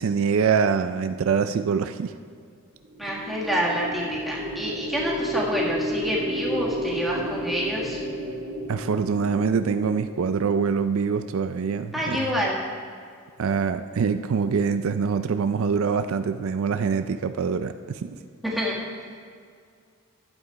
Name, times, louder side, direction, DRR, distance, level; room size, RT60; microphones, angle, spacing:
voice 1, 0.0-2.1 8.7-12.3 13.4-18.2, right 6 dB, 70° right, 10 dB, 0.4 m, -24 dB
sound 1, 2.8-11.2, equal, 45° right, 2.1 m, -32 dB
voice 2, 3.0-8.0 11.9-12.6 18.4-18.8, equal, ahead, -5 dB, 1.7 m, -27 dB
11.5 x 7.9 x 4.6 m, 2.2 s
head